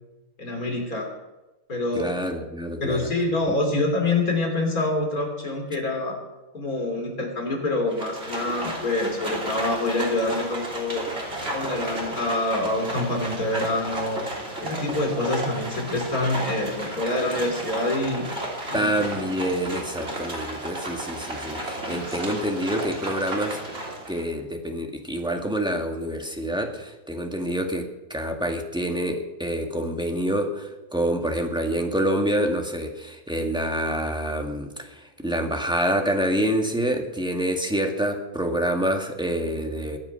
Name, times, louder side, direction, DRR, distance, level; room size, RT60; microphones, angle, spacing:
voice 1, 0.4-1.1 1.7-2.1 2.8-6.2 6.5-11.1 11.5-14.2 14.6-18.2 18.7-19.2 21.8-22.2, left 2 dB, 90° left, 1 dB, 4.0 m, -26 dB
voice 2, 1.9-3.1 3.5-3.6 18.7-23.6 24.1-40.0, equal, 5° right, 2 dB, 1.7 m, -27 dB
Livestock farm animals working animals, 7.9-24.3, right 1 dB, 45° right, 3.4 m, -33 dB
22.0 x 8.7 x 5.7 m, 1.0 s
omnidirectional pair, 1.5 m